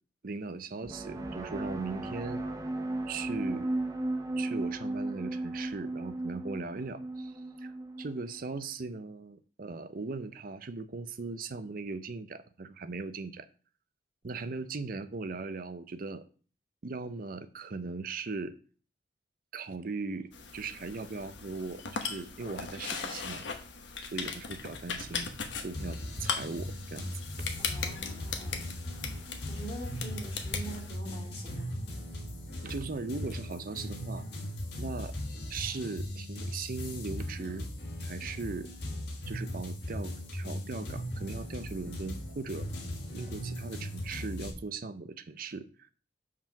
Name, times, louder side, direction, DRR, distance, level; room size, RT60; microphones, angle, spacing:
voice 1, 0.2-2.4 3.1-3.7 4.3-7.3 7.6-7.7 8.0-13.5 14.2-16.2 16.8-18.6 19.5-23.5 24.1-25.3 25.6-27.1 32.6-34.3 34.8-35.1 35.5-37.7 38.0-38.7 39.3-42.7 43.1-45.9, right 4 dB, 50° right, 0.6 m, -39 dB
sound 1, 0.8-8.4, right 2 dB, 20° right, 0.8 m, -35 dB
sound 2, 20.3-31.0, left 5 dB, 85° left, 1.1 m, -39 dB
sound 3, 25.7-44.5, left 1 dB, 65° left, 1.9 m, -38 dB
voice 2, 27.6-31.8, right 1 dB, 35° left, 2.4 m, -45 dB
5.8 x 4.7 x 5.8 m
head